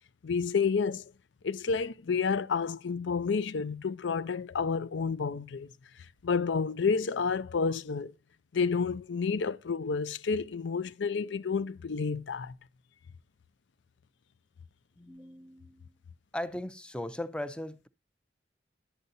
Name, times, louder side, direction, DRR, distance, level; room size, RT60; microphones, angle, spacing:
voice 1, 0.2-1.0 1.4-5.7 6.2-8.1 8.5-12.5, left 5 dB, 80° left, 0.5 m, -30 dB
voice 2, 15.0-15.8 16.3-17.9, left 1 dB, 5° left, 0.5 m, -38 dB
11.0 x 7.9 x 2.7 m
head